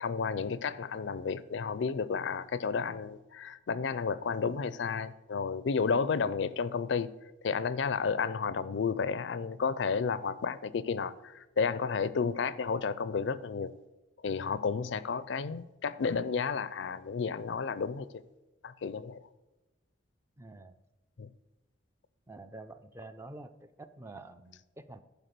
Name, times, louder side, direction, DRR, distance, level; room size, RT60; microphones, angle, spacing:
voice 1, 0.0-7.1 7.4-13.7 14.2-18.1 18.6-19.2 21.2-21.3, left 5 dB, 65° left, 0.4 m, -32 dB
voice 2, 20.4-20.7 22.3-23.5 23.8-25.0, right 2 dB, 15° right, 0.4 m, -47 dB
11.5 x 4.9 x 6.6 m
head